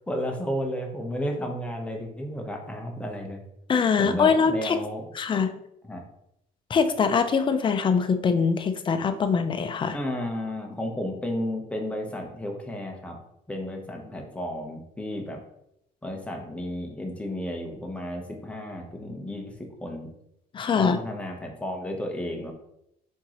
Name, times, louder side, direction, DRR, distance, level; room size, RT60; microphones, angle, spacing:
voice 1, 0.1-3.4 4.0-5.1 5.8-6.0 9.9-13.2 13.5-15.4 16.0-19.6 19.8-20.1 20.8-22.5, left 1 dB, 5° left, 1 dB, 0.9 m, -32 dB
voice 2, 3.7-4.8 5.1-5.5 6.7-10.0 20.5-21.0, left 5 dB, 30° left, 8 dB, 0.5 m, -23 dB
4.5 x 3.7 x 2.9 m, 0.78 s
cardioid pair, 110°, 17 cm